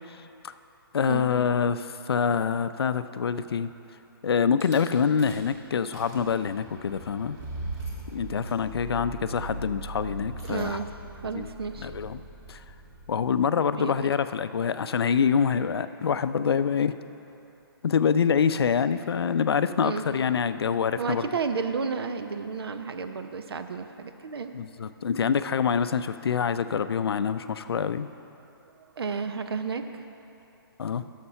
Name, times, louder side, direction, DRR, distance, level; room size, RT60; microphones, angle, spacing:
voice 1, 0.9-3.7 4.2-7.4 8.1-10.8 11.3-11.5 11.8-12.2 12.5-12.6 13.1-16.9 17.8-21.3 24.5-28.1 30.8-31.0, left 6 dB, 80° left, 12 dB, 0.4 m, -26 dB
Rattle / Car / Engine starting, 4.6-4.8 5.2-5.5 5.8-13.5, right 2 dB, 35° right, 1.9 m, -40 dB
voice 2, 10.5-11.9 13.7-14.2 19.8-20.0 21.0-24.5 28.8-30.1, right 5 dB, 75° right, 8 dB, 0.7 m, -32 dB
9.8 x 6.6 x 5.7 m, 2.9 s
hypercardioid pair, 150°, 13 cm